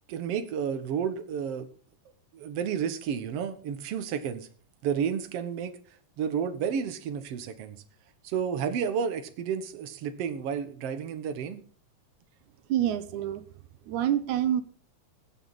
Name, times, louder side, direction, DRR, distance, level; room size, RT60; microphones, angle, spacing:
voice 1, 0.1-1.7 2.3-4.5 4.8-5.8 6.2-7.8 8.2-11.6, right 7 dB, 60° right, 2.1 m, -31 dB
voice 2, 12.7-13.4 13.9-14.6, right 11 dB, 85° right, 2.3 m, -27 dB
22.0 x 8.4 x 4.0 m
omnidirectional pair, 3.4 m